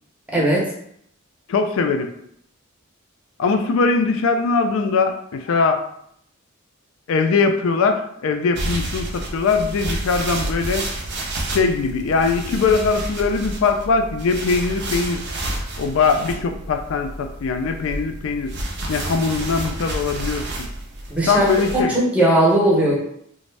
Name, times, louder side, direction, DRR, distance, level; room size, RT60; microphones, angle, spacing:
voice 1, 0.3-0.7 21.1-21.5 21.7-23.0, right 1 dB, 5° right, -4 dB, 0.6 m, -17 dB
voice 2, 1.5-2.1 3.4-5.8 7.1-10.9 11.5-15.2 15.8-18.5 18.9-20.7 21.2-21.9, left 4 dB, 70° left, 5 dB, 0.3 m, -21 dB
sound 1, 8.6-21.8, right 1 dB, 50° right, 0.5 m, -30 dB
2.5 x 2.1 x 3.2 m, 0.70 s
head